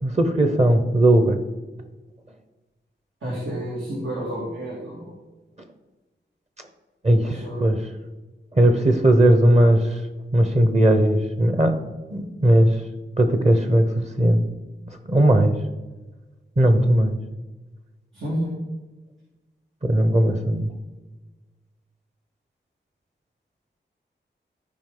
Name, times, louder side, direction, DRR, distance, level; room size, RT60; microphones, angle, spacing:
voice 1, 0.0-1.4 7.0-7.8 8.5-10.0 10.3-11.7 12.1-12.8 13.2-13.9 14.2-14.4 15.0-15.6 16.6-17.2 19.8-20.7, right 1 dB, 35° right, 7 dB, 0.9 m, -18 dB
voice 2, 3.2-5.1 7.2-7.6 18.1-18.5, right 1 dB, 90° right, -6 dB, 2.4 m, -30 dB
14.0 x 4.9 x 3.8 m, 1.2 s
wide cardioid pair, 80°, 20 cm